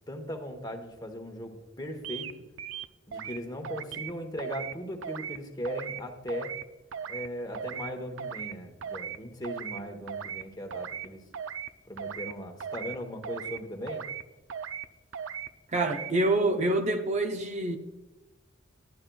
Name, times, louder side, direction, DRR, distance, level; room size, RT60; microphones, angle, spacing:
voice 1, 0.1-2.4 3.1-6.6 7.1-11.2 11.9-14.1, equal, 20° left, 1.0 m, -38 dB
sound 1, 2.0-2.3 2.6-3.4 3.6-4.1 4.4-4.7 5.0-5.4 5.6-6.0 6.3-6.6 6.9-7.3 7.5-7.9 8.2-8.5 8.8-9.2 9.4-9.8 10.1-10.4 10.7-11.1 11.3-11.7 12.0-12.3 12.6-13.0 13.2-13.6 13.9-14.2 14.5-14.9 15.1-15.5 15.8-16.1, right 8 dB, 85° right, 0.4 m, -37 dB
voice 2, 15.7-17.8, right 2 dB, 35° right, 0.5 m, -26 dB
11.5 x 10.5 x 2.3 m
head